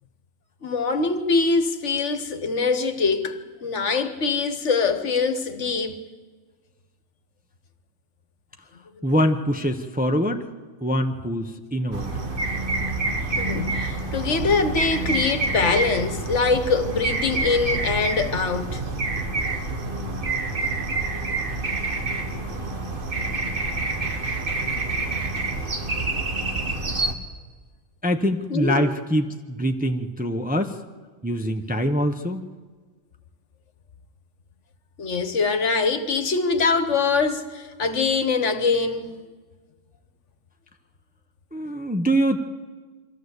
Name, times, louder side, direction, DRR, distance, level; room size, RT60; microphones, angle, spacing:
voice 1, 0.6-6.0 13.4-18.8 28.5-28.9 35.0-39.2, left 4 dB, 65° left, 1.5 m, -23 dB
voice 2, 9.0-10.4 10.8-12.1 28.0-30.7 31.2-32.5 41.5-42.4, equal, 10° right, 0.8 m, -24 dB
sound 1, 11.9-27.1, right 3 dB, 45° right, 1.7 m, -27 dB
23.5 x 14.5 x 8.1 m
omnidirectional pair, 1.3 m